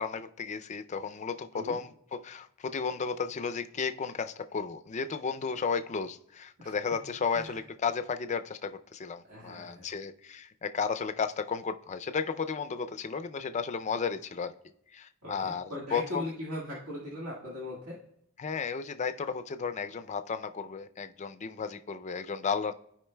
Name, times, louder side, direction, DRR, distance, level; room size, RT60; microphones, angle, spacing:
voice 1, 0.0-14.6 14.9-16.3 18.4-22.7, left 5 dB, 35° left, 10 dB, 0.4 m, -34 dB
voice 2, 9.2-9.9 15.2-18.0, left 1 dB, 80° right, -6 dB, 1.7 m, -39 dB
15.0 x 5.0 x 2.2 m, 0.74 s
head